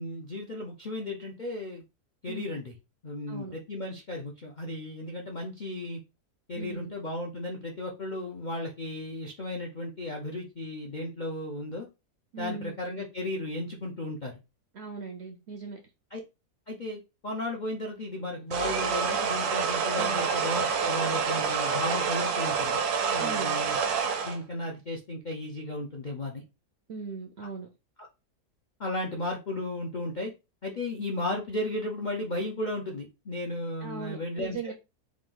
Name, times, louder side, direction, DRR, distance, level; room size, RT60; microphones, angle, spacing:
voice 1, 0.0-1.8 2.2-2.7 3.0-6.0 6.5-11.9 12.4-14.3 16.1-16.2 16.7-22.8 23.1-23.8 24.2-26.4 28.0-28.1 28.8-30.3 30.6-34.7, left 1 dB, 55° left, 0.5 m, -35 dB
voice 2, 6.5-6.9 12.3-12.8 14.7-15.8 19.9-20.2 23.2-23.6 26.9-27.7 33.8-34.7, right 5 dB, 60° right, 0.7 m, -39 dB
sound 1, 18.5-24.4, right 6 dB, 75° right, 1.2 m, -27 dB
3.6 x 2.5 x 3.7 m
omnidirectional pair, 1.7 m